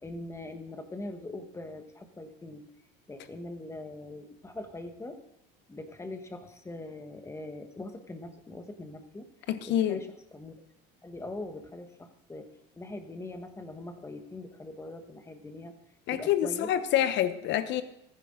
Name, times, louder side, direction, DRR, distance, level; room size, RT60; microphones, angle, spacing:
voice 1, 0.0-2.6 3.1-5.2 5.7-9.3 9.7-10.1 10.3-10.6 11.0-12.5 12.8-15.7 16.1-16.7, left 2 dB, 15° left, 1.4 m, -42 dB
voice 2, 9.5-10.0 16.1-17.8, left 11 dB, 60° left, 1.0 m, -27 dB
14.5 x 10.0 x 3.8 m
supercardioid pair, 105°, 21 cm